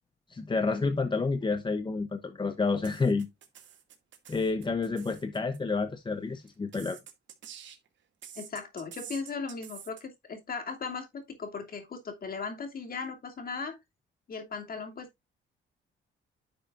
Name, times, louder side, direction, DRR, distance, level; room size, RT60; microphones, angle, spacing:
voice 1, 0.3-3.3 4.3-7.0, left 4 dB, 25° left, 0.8 m, -29 dB
sound 1, 2.8-5.6 6.5-7.9 8.2-10.0, right 9 dB, 70° right, 2.4 m, -47 dB
voice 2, 8.4-13.8 14.3-15.3, left 5 dB, 45° left, 2.8 m, -37 dB
10.5 x 6.6 x 2.6 m
cardioid pair, 90°, 20 cm